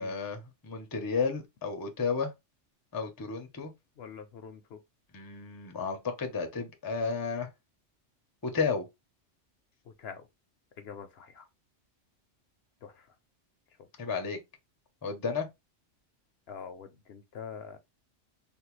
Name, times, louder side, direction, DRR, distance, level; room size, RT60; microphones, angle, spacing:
voice 1, 0.0-2.3 2.9-3.7 5.1-7.5 8.4-8.8 14.0-14.4 15.0-15.5, left 5 dB, 25° left, 0.5 m, -32 dB
voice 2, 4.0-4.8 9.9-10.3 10.8-11.5 12.8-13.1 16.5-17.8, left 6 dB, 65° left, 0.7 m, -45 dB
3.4 x 2.2 x 3.0 m
omnidirectional pair, 1.2 m